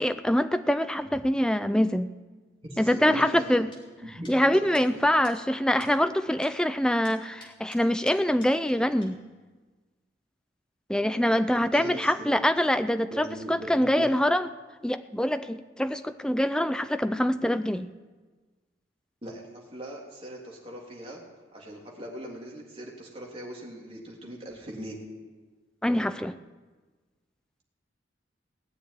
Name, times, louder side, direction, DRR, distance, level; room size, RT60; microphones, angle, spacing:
voice 1, 0.0-2.1 2.8-3.7 4.3-9.2 10.9-14.5 14.8-17.9 25.8-26.4, equal, 5° left, 10 dB, 0.5 m, -24 dB
voice 2, 2.6-3.6 4.0-4.9 11.7-12.4 13.1-14.1 19.2-21.2 21.5-25.0, right 1 dB, 30° right, -2 dB, 3.2 m, -39 dB
sound 1, 3.7-3.8 4.2-4.4 4.7-4.9 5.2-5.4 5.8-5.9 6.4-6.5 7.0-8.8 9.0-9.1, left 2 dB, 25° left, 3.7 m, -50 dB
19.0 x 6.9 x 9.9 m, 1.3 s
head